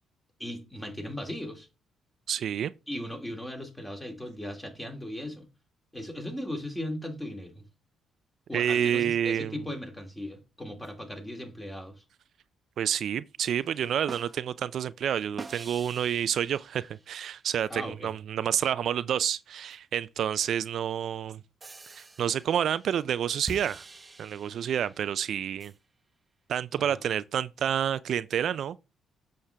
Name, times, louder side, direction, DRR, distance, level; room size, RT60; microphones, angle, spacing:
voice 1, 0.4-1.7 2.9-5.5 5.9-7.6 8.5-12.0 17.7-18.1 26.8-27.0, left 1 dB, 10° left, 2.3 m, -37 dB
voice 2, 2.3-2.7 8.5-9.5 12.8-21.4 21.9-23.8 24.2-25.7 26.5-28.8, right 9 dB, 65° right, 0.3 m, -29 dB
sound 1, 10.8-10.9 12.9-13.0 13.5-14.7 15.4-17.7 19.7-19.8 21.6-25.8, right 2 dB, 25° right, 1.0 m, -47 dB
7.2 x 6.4 x 3.4 m
cardioid pair, 90°, 0 cm